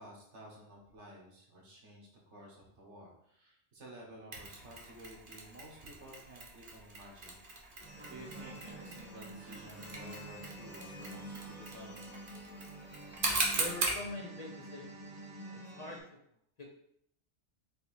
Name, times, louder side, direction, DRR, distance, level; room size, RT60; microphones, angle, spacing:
voice 1, 0.0-7.4 8.1-12.0, right 1 dB, 80° right, -3 dB, 1.6 m, -53 dB
Mechanisms, 4.3-14.1, right 3 dB, 50° right, 1.0 m, -40 dB
sound 1, 7.8-16.0, right 1 dB, 10° right, 1.0 m, -48 dB
voice 2, 13.6-14.9 15.8-16.1 16.6-16.7, left 2 dB, 45° left, -1 dB, 0.6 m, -43 dB
4.4 x 2.7 x 4.3 m, 0.73 s
omnidirectional pair, 1.2 m